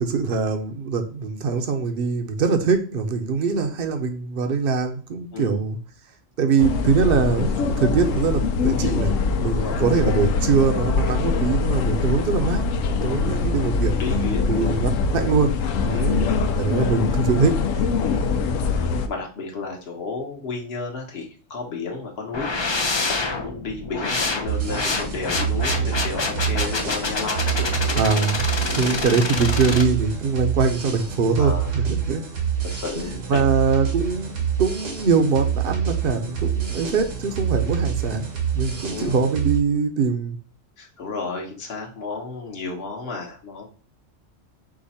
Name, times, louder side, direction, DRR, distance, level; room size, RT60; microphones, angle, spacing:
voice 1, 0.0-5.8 6.4-12.6 13.0-14.0 14.5-16.3 16.6-17.8 27.9-28.4 28.8-32.2 33.0-38.3 38.5-40.4, right 5 dB, 55° right, 7 dB, 0.8 m, -23 dB
sound 1, 6.6-19.1, left 4 dB, 85° left, 1.0 m, -23 dB
voice 2, 9.4-9.9 13.1-13.4 14.0-14.9 15.9-16.1 18.0-18.3 18.7-22.5 23.1-28.0 28.6-28.9 29.4-29.5 31.4-31.8 32.6-33.4 38.9-39.2 40.8-43.7, left 4 dB, 55° left, 0 dB, 1.2 m, -33 dB
sound 2, 22.3-29.8, left 3 dB, 35° left, 0.4 m, -27 dB
sound 3, 24.5-39.6, right 8 dB, 75° right, 1.3 m, -27 dB
5.0 x 2.3 x 4.1 m, 0.40 s
omnidirectional pair, 1.3 m